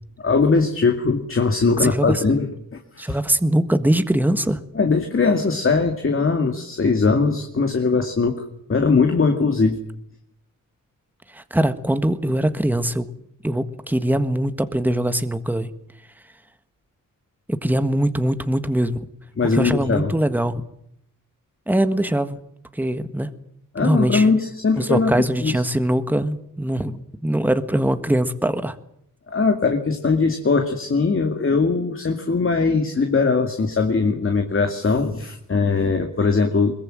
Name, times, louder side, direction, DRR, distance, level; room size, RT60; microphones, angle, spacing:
voice 1, 0.2-3.2 4.7-8.4 8.7-9.8 19.4-20.1 23.7-25.5 29.3-36.7, left 4 dB, 40° left, 4 dB, 2.3 m, -20 dB
voice 2, 1.8-2.2 3.0-4.6 11.3-13.0 13.4-15.7 17.5-19.0 19.5-20.6 21.7-22.4 22.7-23.3 23.8-24.3 24.8-28.8, right 1 dB, 5° right, 10 dB, 1.5 m, -22 dB
22.5 x 20.5 x 7.7 m, 0.73 s
cardioid pair, 95°, 32 cm